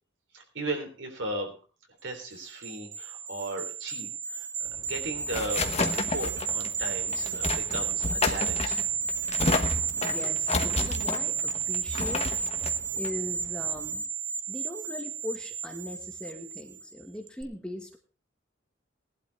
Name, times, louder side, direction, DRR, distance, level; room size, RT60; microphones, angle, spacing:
voice 1, 0.3-1.5 2.0-4.5 4.8-8.8, right 2 dB, 70° right, 4 dB, 3.6 m, -36 dB
sound 1, 2.3-16.9 17.3-17.4, right 6 dB, 45° right, 1.1 m, -32 dB
sound 2, 4.7-14.0, left 3 dB, 35° left, 1.1 m, -32 dB
voice 2, 10.0-12.3 12.9-14.1 14.5-18.0, left 1 dB, 5° left, 3 dB, 1.7 m, -39 dB
18.0 x 11.5 x 3.5 m, 0.35 s
head